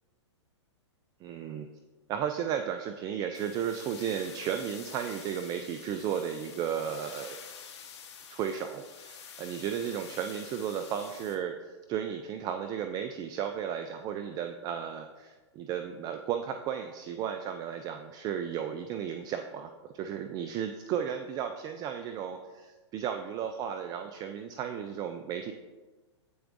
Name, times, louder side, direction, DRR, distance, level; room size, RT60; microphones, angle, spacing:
voice 1, 1.2-1.7 2.1-7.4 8.3-25.5, right 8 dB, 25° right, 7 dB, 0.3 m, -34 dB
sound 1, 3.3-11.4, left 7 dB, 65° left, 1.0 m, -48 dB
8.5 x 4.4 x 2.5 m, 1.3 s
hypercardioid pair, 115°, 15 cm